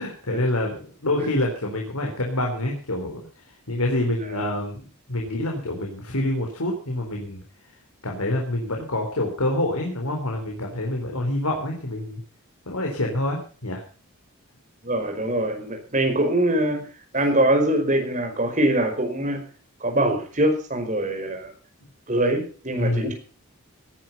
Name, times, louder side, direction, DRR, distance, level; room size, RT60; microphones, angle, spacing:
voice 1, 0.0-3.3 3.7-7.4 8.0-12.2 12.7-13.8 22.7-23.1, left 1 dB, 85° left, 1 dB, 4.1 m, -26 dB
voice 2, 14.8-16.8 17.1-19.4 19.8-21.5 22.1-23.1, right 1 dB, 35° right, 4 dB, 5.3 m, -23 dB
18.5 x 11.5 x 5.6 m, 0.40 s
head